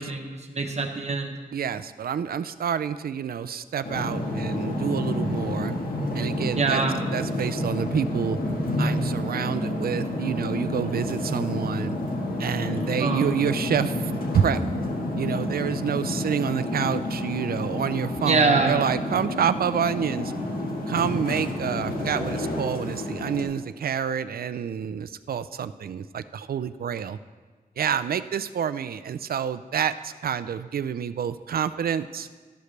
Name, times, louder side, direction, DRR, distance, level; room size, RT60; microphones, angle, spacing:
voice 1, 0.0-1.3 6.5-7.0 13.0-13.3 18.2-18.8, right 4 dB, 45° right, 3 dB, 1.1 m, -24 dB
voice 2, 1.5-5.8 6.1-6.8 7.1-8.4 8.8-12.0 12.4-14.6 15.2-20.3 20.9-27.2 27.8-32.3, right 8 dB, 80° right, 13 dB, 0.4 m, -28 dB
sound 1, 3.8-23.4, left 1 dB, 80° left, 1.5 m, -29 dB
12.5 x 11.5 x 3.3 m, 1.4 s
wide cardioid pair, 145°, 15 cm